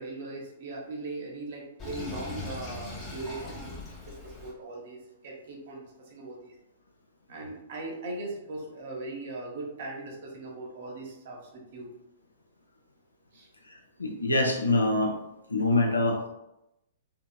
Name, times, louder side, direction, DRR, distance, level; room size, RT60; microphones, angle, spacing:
voice 1, 0.0-3.7 4.0-5.8 6.1-6.5 7.3-11.9 13.3-13.5, right 2 dB, 50° right, -1 dB, 0.7 m, -39 dB
Sink (filling or washing), 1.8-4.5, left 2 dB, 20° left, 0.8 m, -40 dB
voice 2, 14.0-15.1 15.5-16.3, left 2 dB, 80° left, 1 dB, 0.5 m, -24 dB
2.8 x 2.7 x 2.2 m, 0.88 s
figure-of-eight pair, 110°, 0 cm